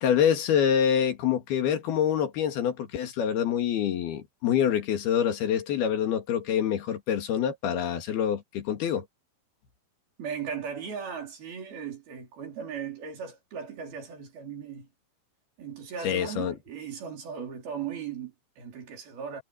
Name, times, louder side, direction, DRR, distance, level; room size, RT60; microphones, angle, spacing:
voice 1, 0.0-9.1 16.0-16.6, left 9 dB, 75° left, 4.1 m, -26 dB
voice 2, 10.2-14.9 15.6-19.4, right 7 dB, 70° right, 6.3 m, -37 dB
omnidirectional pair, 4.5 m